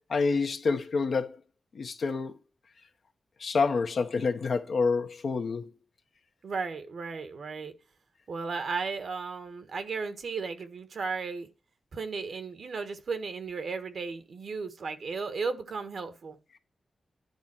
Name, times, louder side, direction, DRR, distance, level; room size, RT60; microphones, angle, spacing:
voice 1, 0.1-1.4 1.7-2.4 3.4-5.7, left 4 dB, 70° left, 1.1 m, -28 dB
voice 2, 6.4-7.7 8.3-11.5 11.9-16.4, right 4 dB, 75° right, 1.4 m, -35 dB
10.5 x 4.0 x 6.1 m
cardioid pair, 70°, 0 cm